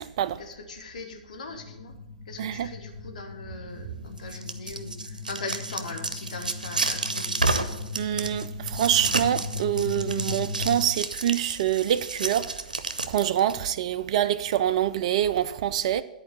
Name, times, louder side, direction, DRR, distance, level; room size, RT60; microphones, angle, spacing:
voice 1, 0.4-2.0 2.3-5.0 5.3-7.6 13.5-13.7, left 3 dB, 70° left, 1.6 m, -40 dB
sound 1, 1.4-10.8, left 4 dB, 5° left, 2.4 m, -38 dB
voice 2, 2.4-2.7 8.0-12.5 13.1-16.0, right 11 dB, 50° right, 0.4 m, -25 dB
sound 2, 4.2-13.5, right 3 dB, 85° right, 0.8 m, -31 dB
10.0 x 4.7 x 7.6 m
figure-of-eight pair, 115°, 4 cm